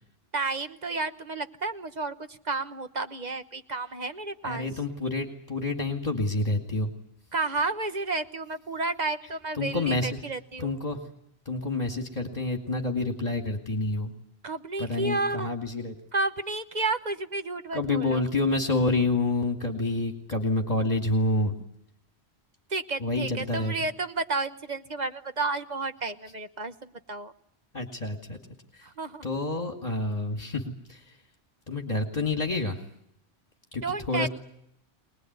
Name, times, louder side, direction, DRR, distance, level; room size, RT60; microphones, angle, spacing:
voice 1, 0.3-4.8 7.3-10.8 14.4-15.5 16.1-18.2 22.7-27.3 28.8-29.2 33.8-34.3, right 3 dB, 40° right, 10 dB, 1.3 m, -31 dB
voice 2, 4.4-6.9 9.6-10.1 10.6-11.0 11.5-14.1 14.8-15.9 17.7-21.5 23.0-23.7 27.7-28.4 29.2-31.0 31.7-32.8 33.7-34.3, left 2 dB, 35° left, 4 dB, 2.5 m, -28 dB
24.5 x 20.0 x 9.5 m, 0.73 s
omnidirectional pair, 1.1 m